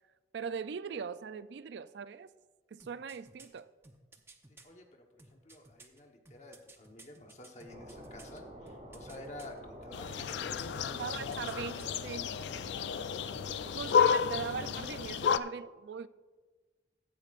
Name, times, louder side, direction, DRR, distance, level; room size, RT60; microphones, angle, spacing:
voice 1, 0.3-2.3 2.7-3.7 10.9-12.3 13.7-16.1, right 6 dB, 75° right, 0.4 m, -40 dB
sound 1, 2.8-4.7 5.2-8.4 8.7-9.6 10.0-10.8 11.0-12.0 12.3-12.4, right 3 dB, 15° right, 0.7 m, -56 dB
voice 2, 4.5-11.7, left 1 dB, 40° left, 1.1 m, -50 dB
sound 2, 7.7-15.0, equal, 45° right, 2.8 m, -48 dB
sound 3, 9.9-15.4, left 7 dB, 75° left, 0.3 m, -31 dB
15.0 x 10.5 x 2.5 m
head